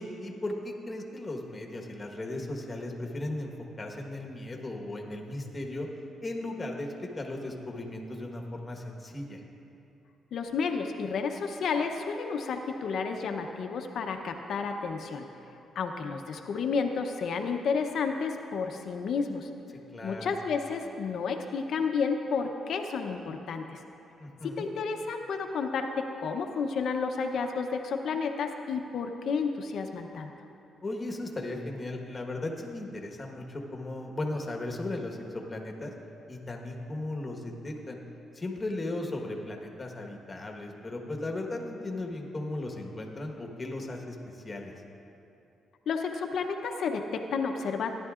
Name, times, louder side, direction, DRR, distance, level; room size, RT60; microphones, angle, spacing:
voice 1, 0.0-3.5 3.8-5.9 6.2-9.4 19.9-20.2 24.2-24.7 30.8-35.9 36.3-38.0 38.3-44.7, left 2 dB, 25° left, 1 dB, 1.3 m, -36 dB
voice 2, 10.3-15.3 15.8-19.5 20.0-23.8 24.4-30.3 45.9-47.9, left 5 dB, 65° left, 5 dB, 0.7 m, -31 dB
16.5 x 11.0 x 2.5 m, 2.8 s
cardioid pair, 105°, 0 cm